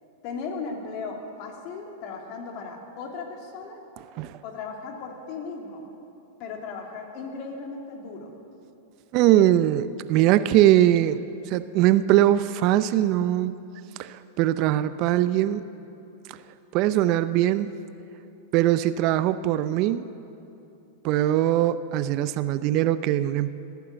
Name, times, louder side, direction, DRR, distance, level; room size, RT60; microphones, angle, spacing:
voice 1, 0.2-3.8 4.4-5.9 6.4-8.3, left 4 dB, 50° left, 2 dB, 2.7 m, -36 dB
voice 2, 9.1-11.2 11.5-13.5 14.0-15.6 16.7-17.7 18.5-20.1 21.0-23.5, right 13 dB, 45° right, 14 dB, 0.5 m, -21 dB
19.0 x 8.4 x 8.1 m, 2.8 s
hypercardioid pair, 105°, 0 cm